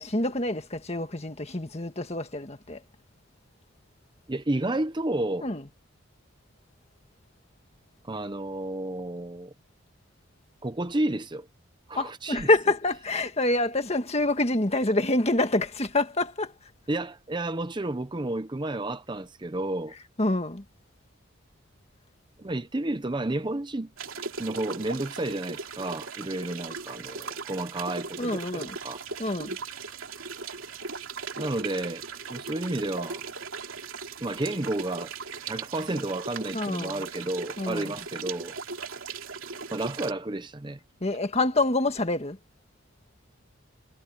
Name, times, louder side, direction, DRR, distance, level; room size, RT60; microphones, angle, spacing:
voice 1, 0.0-2.8 5.4-5.6 11.9-16.5 20.2-20.6 28.2-28.8 29.2-29.6 36.5-37.0 37.6-37.9 41.0-42.4, left 2 dB, 30° left, 1.7 m, -26 dB
voice 2, 4.3-5.5 8.0-9.5 10.6-11.5 11.9-12.5 16.9-19.9 22.4-23.9 24.4-29.0 30.9-31.0 31.4-32.0 32.3-33.2 34.2-35.1 35.4-38.5 39.7-40.8, right 2 dB, 20° right, 0.6 m, -31 dB
sound 1, 24.0-40.1, right 5 dB, 75° right, 2.7 m, -38 dB
head